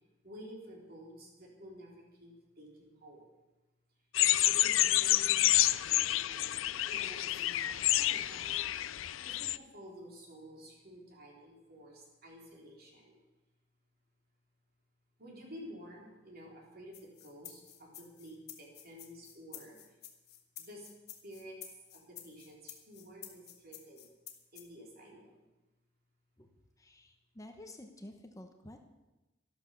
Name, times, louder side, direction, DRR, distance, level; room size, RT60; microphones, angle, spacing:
voice 1, 0.2-3.2 4.5-6.6 6.9-13.2 15.2-19.8 20.6-20.9 21.2-24.0 24.5-25.5, equal, 50° right, 0 dB, 3.6 m, -51 dB
sound 1, 4.1-9.6, left 14 dB, 80° left, 0.5 m, -29 dB
sound 2, 16.9-24.6, left 11 dB, 55° left, 1.8 m, -50 dB
voice 2, 26.8-28.8, left 1 dB, 15° left, 5 dB, 1.0 m, -50 dB
12.5 x 12.0 x 6.8 m, 1.1 s
head